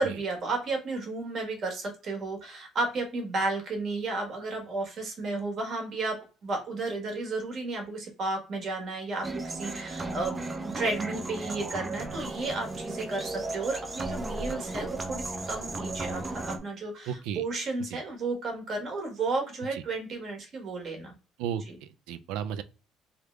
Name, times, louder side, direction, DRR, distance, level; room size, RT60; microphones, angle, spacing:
voice 1, 0.0-6.2 6.4-21.1 21.5-21.8, right 3 dB, 40° right, 1.3 m, -33 dB
sound 1, 9.2-16.6, right 2 dB, 15° right, 0.4 m, -35 dB
voice 2, 17.1-17.4 17.9-18.0 19.7-19.8 21.4-21.6 22.1-22.6, right 9 dB, 90° right, 0.3 m, -33 dB
3.4 x 2.3 x 3.2 m
cardioid pair, 155°, 0 cm